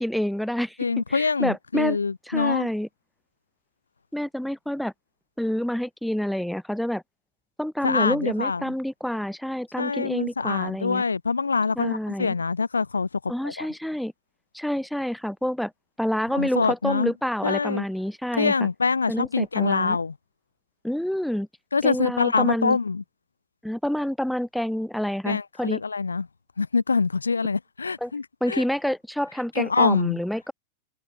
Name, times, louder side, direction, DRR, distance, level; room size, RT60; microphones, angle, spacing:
voice 1, 0.0-0.8 1.1-2.0 2.3-2.9 4.1-4.9 5.4-7.0 7.6-11.0 11.8-12.3 13.3-14.1 14.5-15.7 16.0-18.7 19.1-20.0 20.8-21.5 21.8-22.8 23.6-25.8 28.0-28.1 28.4-30.5, equal, ahead, 1.3 m, -28 dB
voice 2, 0.8-2.7 7.8-8.6 9.8-13.7 16.3-17.1 17.4-17.8 18.3-20.1 21.7-23.0 25.3-26.3 26.6-28.6 29.6-30.2, left 4 dB, 75° left, 0.5 m, -25 dB
figure-of-eight pair, 90°, 0 cm